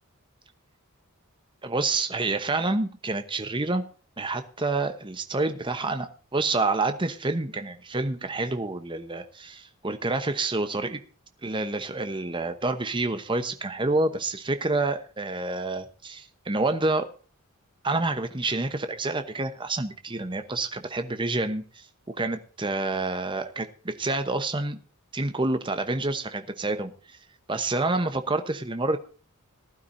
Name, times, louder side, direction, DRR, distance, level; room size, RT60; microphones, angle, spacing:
voice 1, 1.6-3.8 4.2-11.0 11.4-17.1 17.8-24.8 25.1-26.9 27.5-29.0, right 2 dB, 20° right, 8 dB, 1.0 m, -28 dB
19.0 x 12.0 x 2.7 m, 0.37 s
head